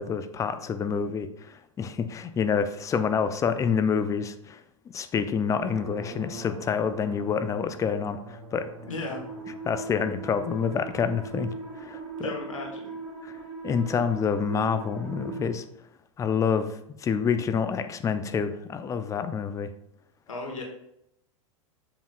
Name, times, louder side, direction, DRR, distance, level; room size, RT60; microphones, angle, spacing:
voice 1, 0.0-4.6 4.9-8.7 9.6-11.5 11.8-12.3 13.2-13.3 13.6-15.6 16.2-19.7, left 6 dB, 20° left, 10 dB, 0.5 m, -27 dB
sound 1, 5.5-15.5, right 3 dB, 65° right, 1.7 m, -40 dB
voice 2, 8.9-9.2 12.2-12.9 20.3-20.6, left 2 dB, 75° left, 1 dB, 1.4 m, -35 dB
7.1 x 5.8 x 2.4 m, 0.77 s
figure-of-eight pair, 95°, 17 cm